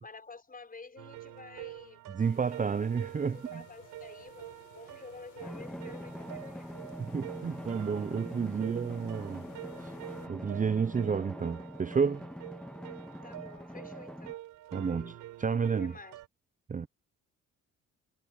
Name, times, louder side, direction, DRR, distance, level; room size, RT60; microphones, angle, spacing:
voice 1, 0.0-2.0 3.3-6.7 13.2-14.4 14.8-15.3 15.8-16.1, left 4 dB, 30° left, 6.4 m, -50 dB
sound 1, 1.0-16.3, right 14 dB, 90° right, 5.6 m, -47 dB
voice 2, 2.1-3.6 7.0-9.4 9.8-9.9 10.3-12.3 14.7-15.1 15.4-15.9 16.7-16.9, right 6 dB, 25° right, 0.7 m, -31 dB
sound 2, 2.2-10.3, left 13 dB, 85° left, 7.5 m, -58 dB
Drum, 5.4-14.3, equal, 5° left, 1.8 m, -44 dB
cardioid pair, 90°, 30 cm